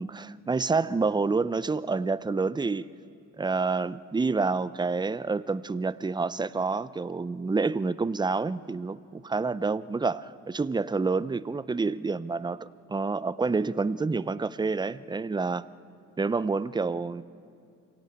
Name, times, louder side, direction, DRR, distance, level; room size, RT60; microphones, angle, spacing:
voice 1, 0.0-2.9 3.4-15.7 16.2-17.2, right 4 dB, 15° right, 16 dB, 0.5 m, -28 dB
26.0 x 17.0 x 8.6 m, 2.5 s
cardioid pair, 90°, 30 cm